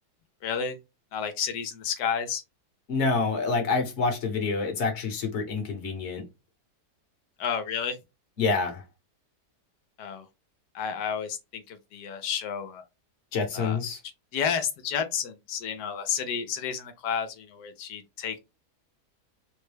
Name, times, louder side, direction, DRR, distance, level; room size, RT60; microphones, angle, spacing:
voice 1, 0.4-0.8 1.1-2.4 7.4-8.0 10.0-10.2 10.7-12.8 13.5-13.8 14.3-18.4, left 7 dB, 85° left, 1.2 m, -31 dB
voice 2, 2.9-6.2 8.4-8.8 13.3-14.0, left 4 dB, 50° left, 1.2 m, -27 dB
3.8 x 2.2 x 3.2 m
omnidirectional pair, 1.8 m